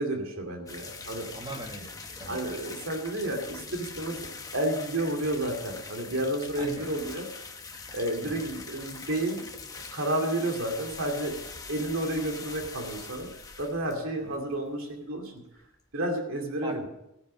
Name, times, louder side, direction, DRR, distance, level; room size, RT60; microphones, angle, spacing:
voice 1, 0.0-1.3 2.3-4.3 4.5-7.2 7.9-9.4 9.9-11.4 11.7-13.3 13.6-15.3 15.9-16.9, right 1 dB, 70° right, 3 dB, 2.4 m, -31 dB
sound 1, 0.7-15.0 15.2-15.3 15.6-15.7 16.1-16.2, left 4 dB, 15° left, 1.0 m, -43 dB
voice 2, 1.2-2.4 6.6-6.9 8.2-8.5 14.2-14.4 16.6-16.8, right 1 dB, 20° right, 3 dB, 1.7 m, -40 dB
15.0 x 9.8 x 6.2 m, 0.89 s
head